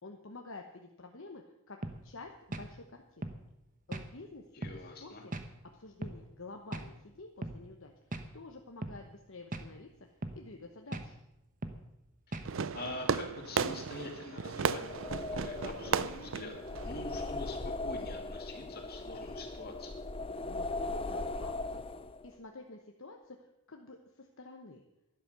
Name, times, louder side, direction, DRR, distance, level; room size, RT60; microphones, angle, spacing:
voice 1, 0.0-1.8 2.0-3.3 3.9-4.4 4.7-5.3 5.7-7.9 8.3-9.9 10.3-11.1 20.5-21.9 22.2-23.4 23.7-24.8, left 3 dB, 60° left, 3 dB, 1.1 m, -49 dB
sound 1, 1.8-2.0 2.5-2.7 3.2-3.4 3.9-4.1 4.6-4.8 5.3-5.5 6.0-6.2 6.7-6.9 7.4-7.6 8.1-8.3 8.8-9.0 9.5-9.7 10.2-10.4 10.9-11.1 11.6-11.8 12.3-12.5, right 2 dB, 35° right, 1.0 m, -39 dB
voice 2, 4.6-5.2 12.7-16.6 16.8-20.0, left 2 dB, 45° left, 2 dB, 2.5 m, -44 dB
Fireworks, 12.4-17.5, right 6 dB, 60° right, 0.5 m, -35 dB
sound 2, 14.7-22.3, left 2 dB, 25° left, 0.6 m, -39 dB
12.0 x 11.0 x 6.8 m, 0.87 s
head